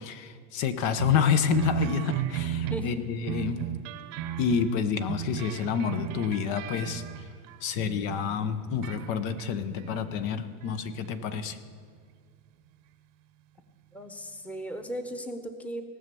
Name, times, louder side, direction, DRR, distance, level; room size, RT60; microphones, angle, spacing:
voice 1, 0.0-3.7 4.4-7.0 7.6-11.6, left 7 dB, 65° left, 10 dB, 1.0 m, -28 dB
sound 1, 1.0-8.3 8.7-10.3 10.6-11.1 12.0-12.1, right 11 dB, 65° right, 0.9 m, -35 dB
voice 2, 13.9-15.8, equal, 5° left, 6 dB, 0.9 m, -36 dB
18.0 x 6.3 x 7.0 m, 2.1 s
supercardioid pair, 120°, 42 cm